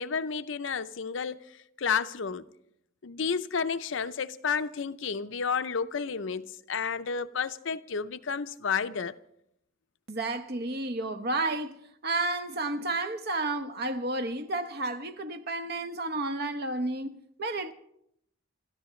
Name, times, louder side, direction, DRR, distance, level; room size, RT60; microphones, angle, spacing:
voice 1, 0.0-1.5 1.8-2.4 3.0-9.1, left 6 dB, 65° left, 0.6 m, -31 dB
voice 2, 10.1-17.1 17.4-17.7, right 2 dB, 50° right, 0.9 m, -31 dB
27.0 x 13.5 x 3.2 m
head